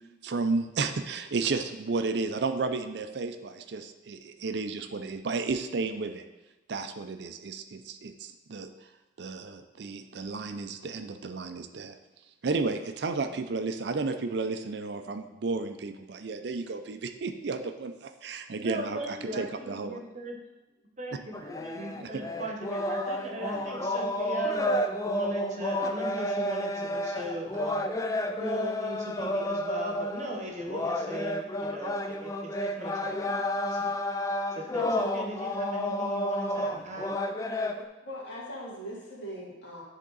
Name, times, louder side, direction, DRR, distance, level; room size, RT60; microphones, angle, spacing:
voice 1, 0.2-6.2 6.7-8.7 9.2-12.0 12.4-20.0 22.0-22.2, right 4 dB, 60° right, 8 dB, 0.5 m, -32 dB
voice 2, 18.6-20.4 21.0-24.6 25.1-27.9 28.4-37.2, right 1 dB, 35° right, 1 dB, 1.0 m, -38 dB
sound 1, 21.3-37.8, left 1 dB, 15° left, 0.3 m, -31 dB
voice 3, 38.0-39.8, equal, 65° left, -5 dB, 2.3 m, -40 dB
10.0 x 3.6 x 3.9 m, 1.1 s
head